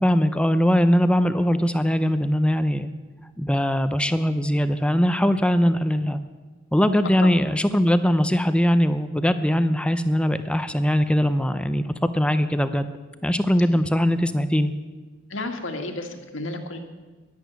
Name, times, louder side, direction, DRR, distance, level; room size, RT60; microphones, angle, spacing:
voice 1, 0.0-2.9 3.4-6.2 6.7-12.9 13.2-14.7, equal, 5° left, 11 dB, 0.5 m, -21 dB
voice 2, 15.3-16.8, left 2 dB, 70° left, 4 dB, 1.8 m, -32 dB
11.5 x 11.0 x 9.2 m, 1.3 s
head